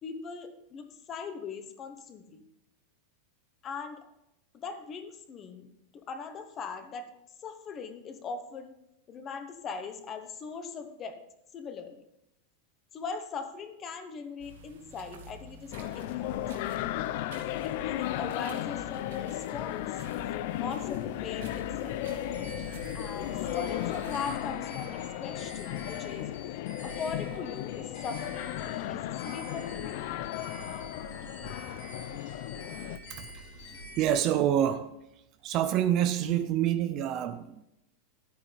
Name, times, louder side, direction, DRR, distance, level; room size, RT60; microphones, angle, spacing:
voice 1, 0.0-2.4 3.6-4.0 4.5-5.7 6.1-7.1 7.4-8.7 9.1-11.2 11.5-12.0 12.9-17.2 17.6-19.9 20.5-22.0 22.9-26.3 26.8-30.0, left 5 dB, 20° left, 1.0 m, -40 dB
sound 1, 14.4-24.3, right 2 dB, 80° right, 2.2 m, -48 dB
sound 2, 15.7-33.0, left 14 dB, 45° left, 0.4 m, -35 dB
sound 3, 22.0-34.2, equal, 75° left, 3.4 m, -46 dB
voice 2, 33.1-35.0 35.4-37.6, right 10 dB, 30° right, 0.5 m, -28 dB
12.5 x 9.1 x 3.4 m
supercardioid pair, 180°, 0 cm